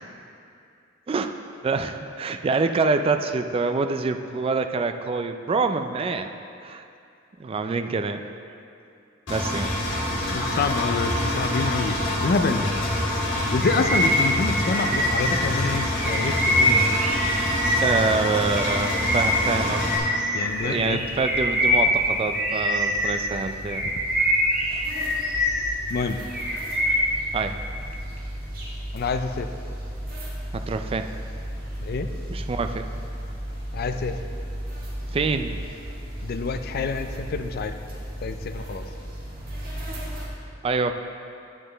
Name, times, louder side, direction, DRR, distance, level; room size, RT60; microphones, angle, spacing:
voice 1, 1.6-6.3 6.6-6.8 7.4-8.2 9.3-9.7 10.2-10.3 17.8-19.9 20.4-23.9 27.3-27.6 30.5-31.1 32.3-32.9 35.1-35.6 40.6-40.9, right 4 dB, 30° right, 8 dB, 0.3 m, -26 dB
Engine, 9.3-20.0, left 1 dB, 75° left, 1.7 m, -26 dB
voice 2, 10.3-12.7 13.5-17.0 20.3-21.0 25.9-26.2 28.9-29.5 31.8-32.1 33.7-34.2 36.2-37.8 38.2-38.8, left 4 dB, 50° left, 8 dB, 0.4 m, -27 dB
Bird vocalization bird call bird song, 13.6-18.1 18.5-23.3 23.7-25.8 26.1-27.2, equal, 5° right, 1.3 m, -24 dB
sound 1, 20.4-40.2, equal, 50° right, 1.7 m, -35 dB
9.4 x 7.5 x 3.4 m, 2.5 s
head